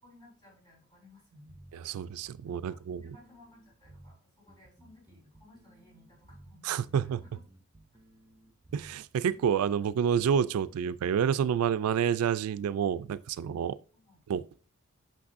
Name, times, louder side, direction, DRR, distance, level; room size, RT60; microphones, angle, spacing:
voice 1, 0.0-1.6 2.4-7.4 9.3-9.4 13.9-14.2, left 2 dB, 20° left, 3.9 m, -58 dB
sound 1, 1.5-11.1, right 1 dB, 15° right, 0.6 m, -57 dB
voice 2, 1.7-3.0 6.6-7.2 8.7-13.8 14.3-14.4, right 8 dB, 80° right, 0.3 m, -28 dB
8.4 x 6.0 x 2.5 m
head